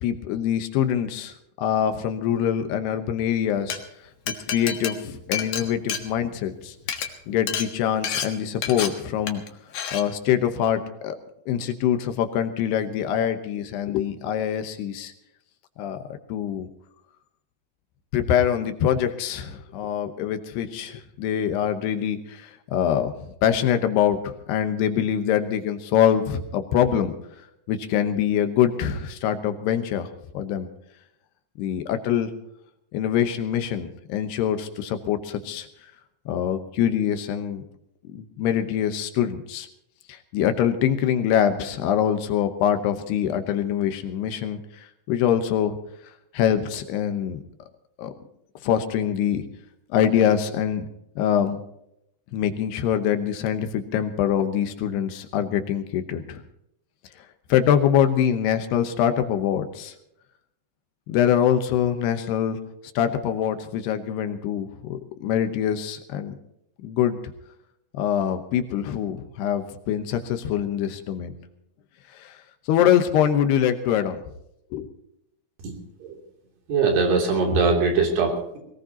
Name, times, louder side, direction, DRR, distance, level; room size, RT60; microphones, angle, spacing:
voice 1, 0.0-3.8 4.5-5.0 5.3-6.7 7.3-9.4 9.9-11.2 11.5-15.1 15.8-16.0 16.3-16.7 18.1-23.1 23.4-27.1 27.7-30.1 30.3-30.7 31.6-32.3 32.9-35.7 36.3-37.6 38.1-39.7 40.1-44.6 45.1-45.8 46.3-47.4 48.0-48.1 48.6-49.4 49.9-50.9 51.2-51.6 52.3-56.4 57.5-59.9 61.1-62.6 63.0-66.3 66.8-67.2 68.0-71.3 72.2-72.4 72.7-74.2 74.7-74.9, left 9 dB, 75° left, 8 dB, 2.9 m, -24 dB
Glass, 3.5-3.8 4.3-6.5 6.8-7.1 7.5-7.7 8.0-8.3 8.6-8.9 9.3-9.5 9.7-10.0, left 8 dB, 60° left, 1.7 m, -29 dB
voice 2, 76.7-78.6, right 4 dB, 70° right, 1 dB, 5.0 m, -21 dB
22.0 x 18.0 x 2.9 m, 0.78 s
omnidirectional pair, 5.0 m